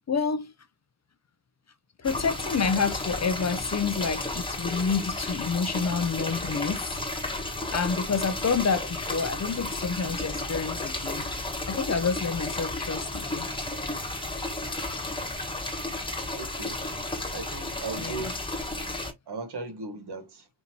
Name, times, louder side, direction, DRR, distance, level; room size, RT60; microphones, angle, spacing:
voice 1, 0.1-0.5 2.0-7.0 7.7-11.3 11.7-13.5 18.0-18.2, left 5 dB, 40° left, 0.5 m, -28 dB
sound 1, 2.0-19.1, left 2 dB, 10° left, 1.2 m, -33 dB
voice 2, 16.3-16.8 17.3-18.4 19.3-20.5, right 3 dB, 60° right, 1.3 m, -37 dB
5.3 x 2.8 x 2.8 m
cardioid pair, 90°, 45 cm